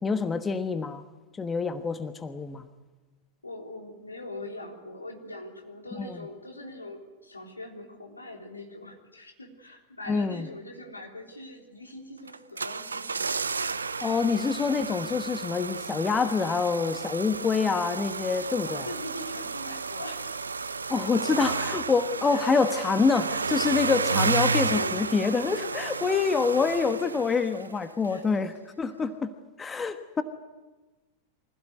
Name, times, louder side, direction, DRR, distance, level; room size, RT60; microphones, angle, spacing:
voice 1, 0.0-1.0 1.4-2.7 6.0-6.2 10.1-10.5 14.0-18.9 20.9-29.3 29.6-30.2, left 5 dB, 15° left, 9 dB, 1.3 m, -26 dB
voice 2, 3.4-13.2 18.7-20.5 22.3-22.4 24.4-26.4 28.1-28.2 29.0-29.1, left 1 dB, 80° left, 2 dB, 3.6 m, -42 dB
sound 1, 12.3-27.8 28.0-28.1, right 4 dB, 75° right, 0.7 m, -32 dB
25.0 x 16.0 x 9.5 m, 1.2 s
figure-of-eight pair, 90°, 0 cm